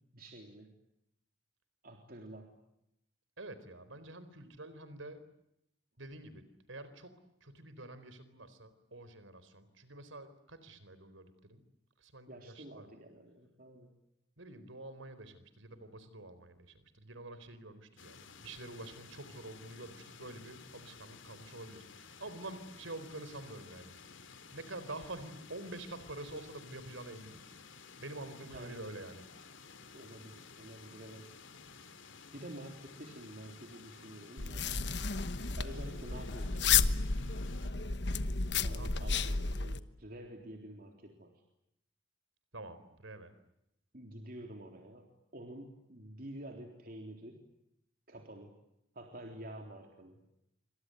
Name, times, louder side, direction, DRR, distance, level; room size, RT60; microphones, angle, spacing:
voice 1, 0.1-0.7 1.8-2.5 12.3-13.9 28.4-28.9 29.9-31.3 32.3-34.7 35.6-37.1 38.6-41.4 43.9-47.4 48.1-48.6 48.9-50.2, right 1 dB, 50° right, 3 dB, 3.7 m, -49 dB
voice 2, 3.4-5.2 6.0-11.6 12.0-12.9 14.4-23.9 24.5-27.4 28.0-29.2 38.7-39.1 42.5-43.3, right 2 dB, 85° right, 13 dB, 4.2 m, -47 dB
sound 1, 18.0-37.7, left 5 dB, 75° left, 2.9 m, -54 dB
sound 2, 34.4-39.8, left 5 dB, 60° left, 1.2 m, -32 dB
27.5 x 26.0 x 7.9 m, 0.80 s
head